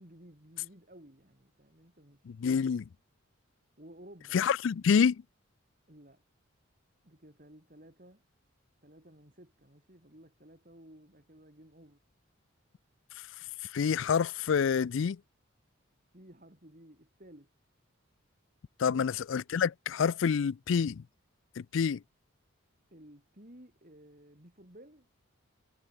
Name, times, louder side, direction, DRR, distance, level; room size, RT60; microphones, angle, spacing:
voice 1, 0.0-2.7 3.8-4.4 5.9-6.2 7.0-8.2 8.8-12.0 16.1-17.5 18.9-19.2 22.9-25.1, right 1 dB, 40° right, 4.2 m, -55 dB
voice 2, 2.3-2.8 4.3-5.2 13.7-15.2 18.8-21.0 21.6-22.0, left 6 dB, 65° left, 0.4 m, -27 dB
head